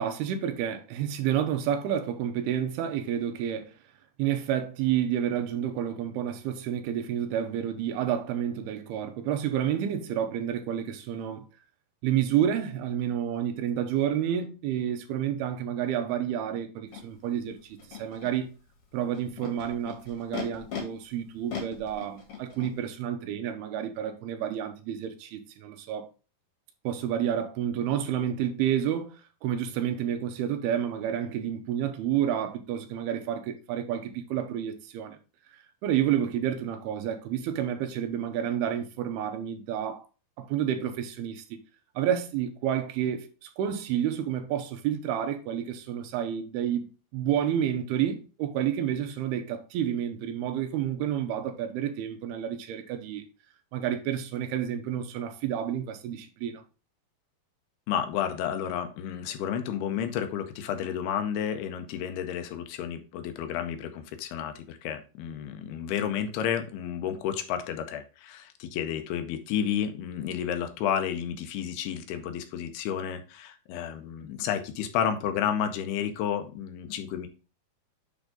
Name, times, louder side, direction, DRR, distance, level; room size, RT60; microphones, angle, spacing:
voice 1, 0.0-3.7 4.2-11.5 12.0-18.5 18.9-26.1 26.8-35.2 35.8-40.0 40.4-41.4 42.0-53.2 53.7-56.6, right 10 dB, 80° right, 2.7 m, -30 dB
Animal, 16.9-17.0 17.8-18.3 19.1-20.8 21.5-22.7, left 7 dB, 55° left, 1.9 m, -38 dB
voice 2, 57.9-77.3, left 9 dB, 90° left, 2.8 m, -31 dB
8.4 x 3.6 x 3.7 m
omnidirectional pair, 4.5 m